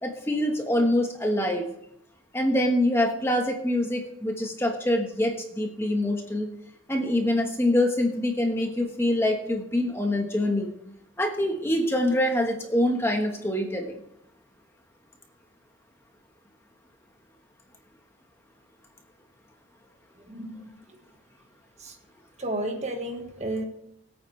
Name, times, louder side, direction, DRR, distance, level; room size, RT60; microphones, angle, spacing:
voice 1, 0.0-1.6 2.3-6.5 6.9-10.7 11.2-14.0, left 1 dB, 10° left, 2 dB, 1.3 m, -25 dB
voice 2, 20.2-20.7 21.8-22.0 22.4-23.6, right 1 dB, 35° right, 3 dB, 1.6 m, -32 dB
21.5 x 9.0 x 3.3 m, 0.75 s
head